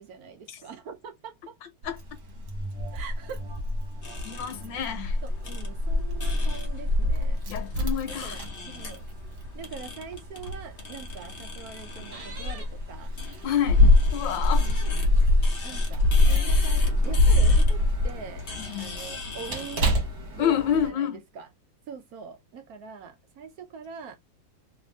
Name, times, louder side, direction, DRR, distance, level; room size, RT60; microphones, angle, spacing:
voice 1, 0.0-1.6 2.9-3.4 5.2-7.4 8.1-9.0 9.5-13.1 14.6-14.8 15.6-18.5 18.8-20.0 20.3-21.5 21.9-24.2, right 6 dB, 70° right, 0.9 m, -43 dB
Keys jangling, 1.8-20.9, left 2 dB, 55° right, 1.4 m, -25 dB
sound 1, 2.4-7.4 7.8-7.9, right 2 dB, 25° right, 1.3 m, -43 dB
sound 2, 4.0-20.0, left 3 dB, 55° left, 0.6 m, -42 dB
voice 2, 4.2-5.2 7.5-8.4 13.4-13.8 14.1-14.7 18.6-18.9 20.4-21.2, left 9 dB, 70° left, 1.4 m, -28 dB
3.2 x 2.6 x 3.2 m
omnidirectional pair, 2.1 m